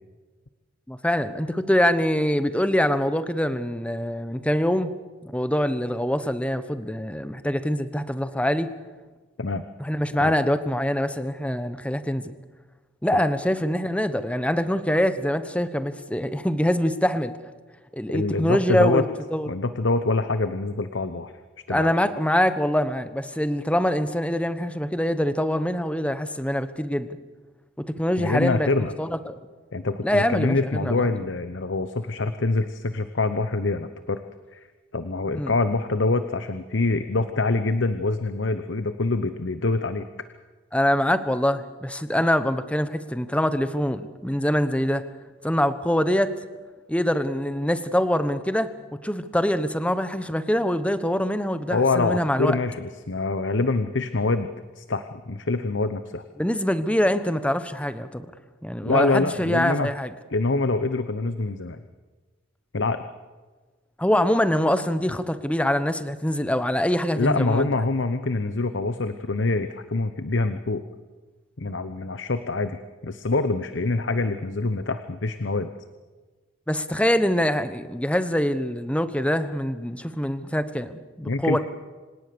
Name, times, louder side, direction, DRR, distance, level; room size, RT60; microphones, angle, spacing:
voice 1, 0.9-4.9 5.2-8.7 9.8-12.3 13.0-17.3 17.9-19.0 19.3-19.5 21.7-27.1 27.8-28.7 29.0-29.4 30.0-31.0 35.3-35.5 40.7-45.0 45.4-46.3 46.9-48.7 49.0-52.6 56.4-58.3 58.6-60.1 64.0-67.7 76.7-81.6, equal, 5° left, 11 dB, 1.1 m, -24 dB
voice 2, 18.1-19.0 19.5-21.3 21.7-21.9 28.2-28.9 29.7-34.2 34.5-34.6 34.9-40.1 51.7-54.5 54.8-56.2 58.8-59.9 60.3-61.8 62.7-63.1 67.2-70.8 71.6-75.7 81.2-81.6, left 3 dB, 65° left, 10 dB, 0.9 m, -25 dB
26.5 x 18.0 x 6.9 m, 1.3 s
head